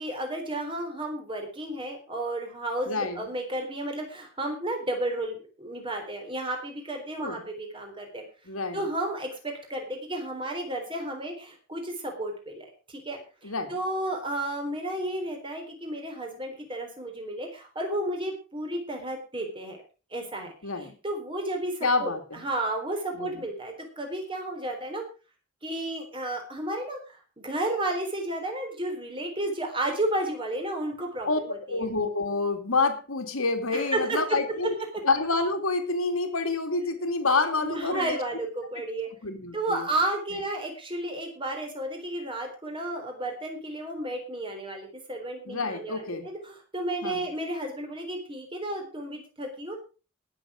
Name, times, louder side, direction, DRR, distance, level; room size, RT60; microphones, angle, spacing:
voice 1, 0.0-8.2 8.7-19.8 20.1-25.0 25.6-31.8 33.7-34.4 37.6-49.8, right 1 dB, 25° right, 3 dB, 3.7 m, -32 dB
voice 2, 2.9-3.2 7.2-7.5 8.5-8.8 13.4-13.8 20.6-20.9 21.8-22.4 23.2-23.3 31.3-31.4 31.7-34.7 35.0-38.2 39.2-39.9 45.5-46.3 47.0-47.3, left 3 dB, 80° left, 6 dB, 2.3 m, -28 dB
19.0 x 7.2 x 5.0 m, 0.34 s
head